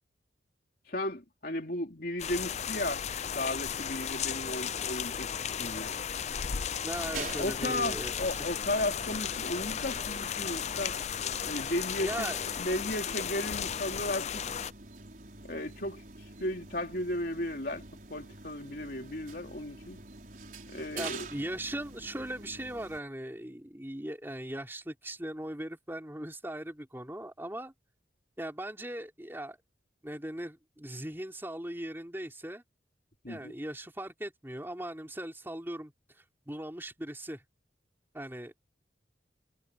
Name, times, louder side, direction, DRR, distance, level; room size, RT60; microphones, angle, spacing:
voice 1, 0.9-3.0 3.3-6.0 7.4-11.0 11.5-14.4 15.4-17.8 18.1-20.0 20.7-21.3 33.2-33.5, left 1 dB, 55° left, 3.3 m, -35 dB
sound 1, 2.2-14.7, left 8 dB, 40° left, 0.5 m, -35 dB
voice 2, 6.8-8.4 12.0-12.4 20.9-27.7 28.4-29.6 30.0-32.6 33.3-37.4 38.1-38.7, right 1 dB, 15° right, 3.2 m, -39 dB
sound 2, 6.9-23.0, right 3 dB, 50° right, 5.3 m, -47 dB
head